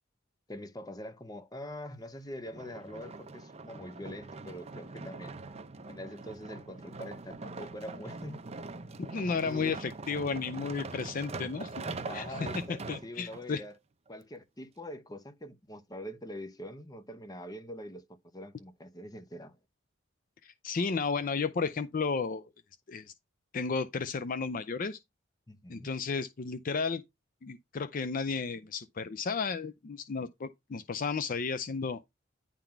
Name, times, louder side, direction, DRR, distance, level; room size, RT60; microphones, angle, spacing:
voice 1, 0.5-5.3 5.9-8.4 9.4-9.8 12.1-13.8 14.1-18.0 18.3-19.6 25.5-25.9, left 1 dB, 20° left, 1.0 m, -44 dB
sound 1, 2.4-13.4 14.1-14.2, right 3 dB, 35° right, 0.7 m, -42 dB
voice 2, 9.0-11.7 12.1-12.6 12.9-13.6 20.4-22.5 22.9-23.1 23.5-25.0 25.7-27.0 27.4-32.0, left 5 dB, 45° left, 0.4 m, -33 dB
10.0 x 3.9 x 4.5 m
head